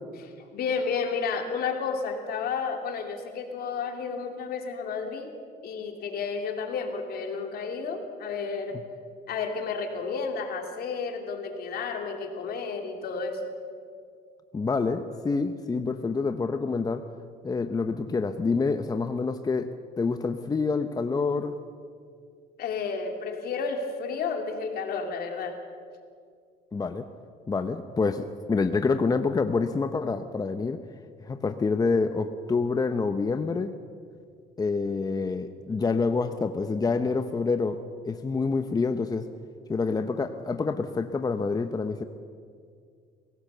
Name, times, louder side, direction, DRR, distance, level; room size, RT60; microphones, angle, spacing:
voice 1, 0.2-5.3 5.6-8.8 9.3-13.5 22.6-25.6, left 5 dB, 65° left, 4 dB, 2.8 m, -31 dB
voice 2, 14.5-17.0 17.4-19.7 20.0-21.5 26.7-27.1 27.5-30.8 31.3-33.7 34.6-37.8 38.0-39.3 39.7-42.0, left 4 dB, 20° left, 8 dB, 0.8 m, -27 dB
23.5 x 17.0 x 6.8 m, 2.2 s
cardioid pair, 110°, 17 cm